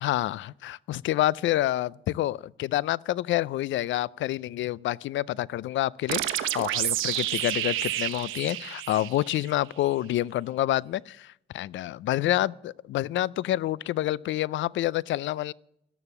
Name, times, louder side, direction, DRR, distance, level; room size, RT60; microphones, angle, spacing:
voice 1, 0.0-15.5, left 14 dB, 70° left, 0.4 m, -28 dB
sound 1, 6.1-9.6, right 13 dB, 90° right, 1.0 m, -30 dB
13.0 x 11.0 x 7.1 m
cardioid pair, 90°, 20 cm